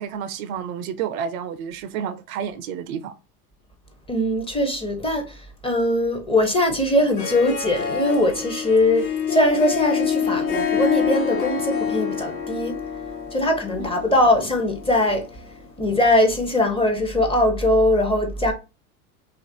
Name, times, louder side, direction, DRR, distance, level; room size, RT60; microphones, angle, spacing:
voice 1, 0.0-3.1 13.8-13.9, right 8 dB, 65° right, 0.5 m, -30 dB
voice 2, 4.1-12.8 13.3-18.5, left 1 dB, 10° left, 0.6 m, -21 dB
Harp, 7.0-15.6, left 7 dB, 65° left, 1.1 m, -27 dB
2.8 x 2.5 x 2.6 m
hypercardioid pair, 90°, 46 cm